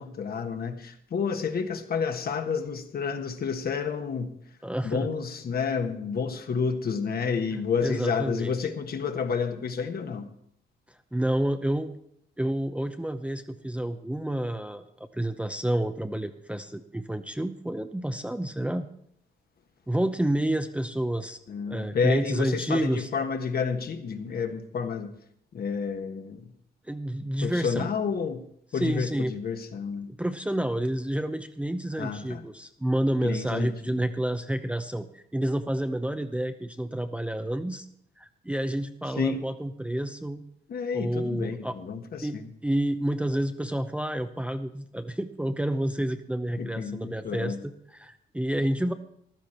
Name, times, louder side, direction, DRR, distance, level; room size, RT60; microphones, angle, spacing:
voice 1, 0.0-4.3 4.8-10.3 21.5-25.1 25.5-26.4 27.4-28.4 28.7-30.1 32.0-32.4 33.2-34.1 39.2-39.4 40.7-42.5 46.6-47.6, left 6 dB, 50° left, 7 dB, 1.4 m, -30 dB
voice 2, 4.6-5.1 7.8-8.5 11.1-11.9 12.4-14.8 15.1-18.9 19.9-21.4 21.7-23.1 26.9-27.9 28.7-29.3 30.2-37.9 38.2-40.4 40.9-41.8 42.2-48.9, right 1 dB, 5° right, 8 dB, 0.7 m, -29 dB
15.0 x 11.5 x 4.4 m, 0.70 s
cardioid pair, 90°, 20 cm